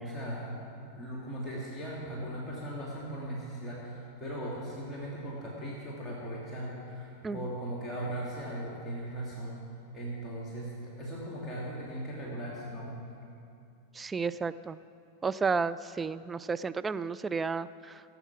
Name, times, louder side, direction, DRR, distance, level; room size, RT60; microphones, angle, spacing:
voice 1, 0.0-9.6 9.9-12.9, right 1 dB, 15° left, -5 dB, 2.4 m, -38 dB
voice 2, 13.9-14.8 15.2-18.0, right 5 dB, 15° right, 13 dB, 0.3 m, -32 dB
17.0 x 8.0 x 6.1 m, 2.5 s
figure-of-eight pair, 90°, 0 cm